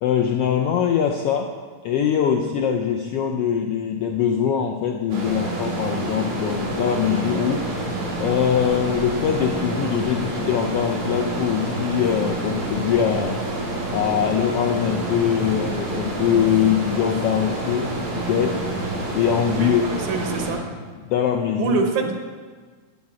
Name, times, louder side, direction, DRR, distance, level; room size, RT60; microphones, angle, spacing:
voice 1, 0.0-1.5 1.8-13.4 13.9-18.9 19.1-19.9 21.0-21.8, left 8 dB, 80° left, 2 dB, 1.4 m, -22 dB
sound 1, 5.1-20.5, right 1 dB, 60° right, 3.6 m, -28 dB
voice 2, 19.5-20.6 21.6-22.1, right 5 dB, 80° right, 4 dB, 2.7 m, -25 dB
13.5 x 8.4 x 4.9 m, 1.5 s
omnidirectional pair, 3.4 m